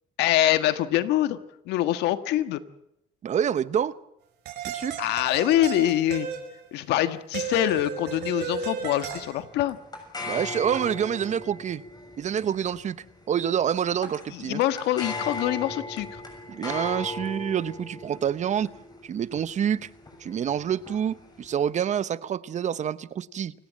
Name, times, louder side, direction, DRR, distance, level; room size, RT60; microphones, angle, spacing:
voice 1, 0.2-1.4 1.7-2.6 5.0-6.3 6.7-9.8 14.3-16.2, left 13 dB, 85° left, 11 dB, 1.5 m, -24 dB
voice 2, 3.2-3.9 4.6-5.0 10.3-11.8 12.2-13.0 13.3-14.6 16.5-18.7 19.0-19.9 20.2-23.5, right 8 dB, 45° right, 17 dB, 0.9 m, -27 dB
sound 1, 4.5-6.6 7.3-9.4, right 6 dB, 80° right, 5.1 m, -34 dB
sound 2, 9.1-21.7, left 2 dB, 25° left, 6.7 m, -39 dB
28.5 x 17.5 x 7.6 m, 0.80 s
cardioid pair, 110°, 17 cm